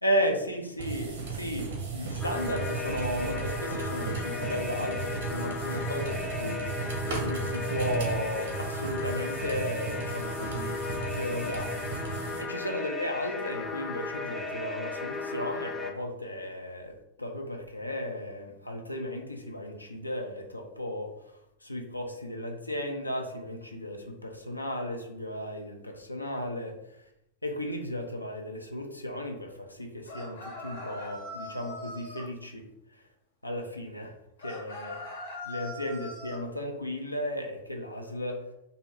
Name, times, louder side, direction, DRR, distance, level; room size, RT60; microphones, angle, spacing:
voice 1, 0.0-10.8 11.1-11.9 12.4-26.8 27.4-32.7 32.9-33.0 33.4-34.1 34.4-34.9 35.4-38.5, equal, 85° left, 2 dB, 0.4 m, -35 dB
sound 1, 0.8-12.4, right 4 dB, 60° right, 0.8 m, -35 dB
sound 2, 2.2-15.9, left 4 dB, 15° left, 0.4 m, -36 dB
sound 3, 30.1-32.3 34.4-36.4, left 1 dB, 55° left, 1.0 m, -41 dB
2.6 x 2.4 x 3.0 m, 0.82 s
figure-of-eight pair, 90°, 0 cm